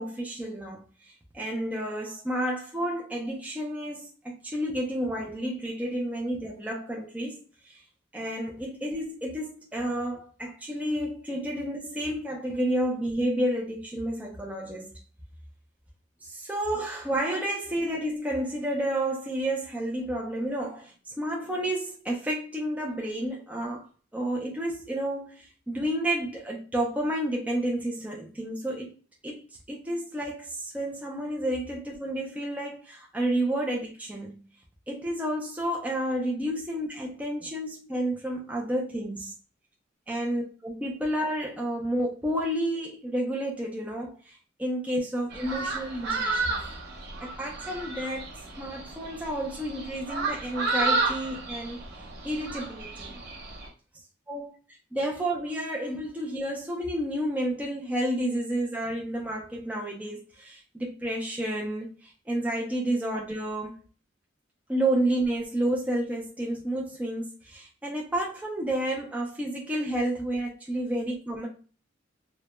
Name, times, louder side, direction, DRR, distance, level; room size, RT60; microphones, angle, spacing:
voice 1, 0.0-7.8 8.1-14.9 16.2-23.9 24.1-28.9 29.2-29.4 29.7-34.4 34.9-39.3 40.1-46.6 47.2-48.3 48.6-51.8 52.2-53.2 54.3-54.6 54.9-63.7 64.7-71.5, right 1 dB, 5° right, 0.3 m, -30 dB
sound 1, 45.3-53.7, right 3 dB, 55° right, 0.7 m, -32 dB
2.1 x 2.0 x 2.9 m
head